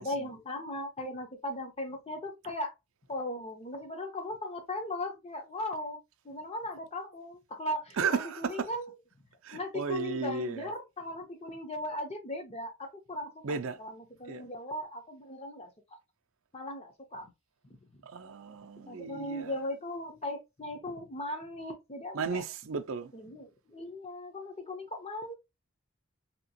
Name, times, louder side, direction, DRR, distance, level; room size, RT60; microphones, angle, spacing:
voice 1, 0.0-2.7 3.1-6.0 6.2-8.9 9.5-13.3 13.8-15.7 16.5-17.3 17.8-18.0 18.9-22.4 23.1-25.3, left 1 dB, 30° left, 0.7 m, -38 dB
voice 2, 7.9-8.7 9.4-10.7 13.4-13.8 14.3-14.5 18.0-19.6 22.1-23.1, right 5 dB, 65° right, 0.5 m, -34 dB
2.9 x 2.9 x 2.8 m
head